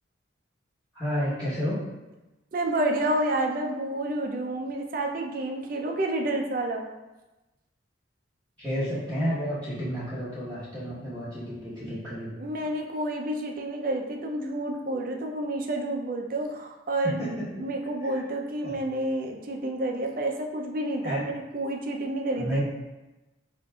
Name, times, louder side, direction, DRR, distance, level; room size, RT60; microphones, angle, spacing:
voice 1, 0.9-1.8 8.6-12.3 17.0-17.4 18.1-18.2 18.6-18.8 21.0-21.3 22.4-22.6, equal, 10° left, -11 dB, 1.1 m, -31 dB
voice 2, 2.5-6.9 12.4-22.6, right 1 dB, 45° right, 2 dB, 0.5 m, -29 dB
7.6 x 2.6 x 2.3 m, 1.1 s
head